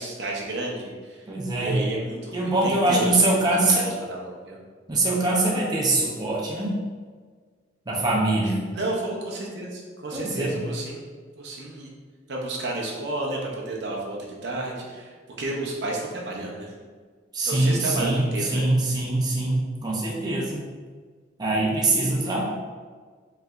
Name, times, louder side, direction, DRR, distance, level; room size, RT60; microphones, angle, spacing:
voice 1, 0.0-1.3 1.6-4.6 8.4-11.0 11.4-11.9 12.3-16.7 17.4-18.6, right 2 dB, 65° right, -2 dB, 0.7 m, -32 dB
voice 2, 1.3-1.8 2.3-3.8 4.9-6.8 7.9-8.6 10.1-10.6 17.3-18.2 18.5-20.6 21.4-22.5, right 2 dB, 20° right, -5 dB, 0.6 m, -23 dB
4.7 x 3.3 x 2.5 m, 1.5 s
head